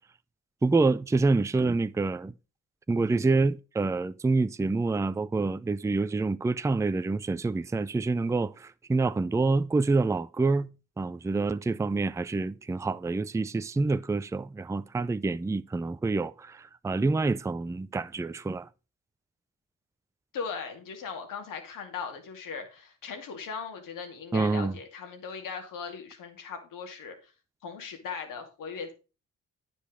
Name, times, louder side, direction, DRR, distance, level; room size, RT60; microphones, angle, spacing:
voice 1, 0.6-2.3 2.9-10.7 11.0-18.7 24.3-24.7, right 3 dB, 10° right, 0.4 m, -27 dB
voice 2, 20.3-27.3 27.6-28.9, left 5 dB, 75° left, 2.4 m, -38 dB
9.9 x 5.2 x 5.0 m
supercardioid pair, 60°, 33 cm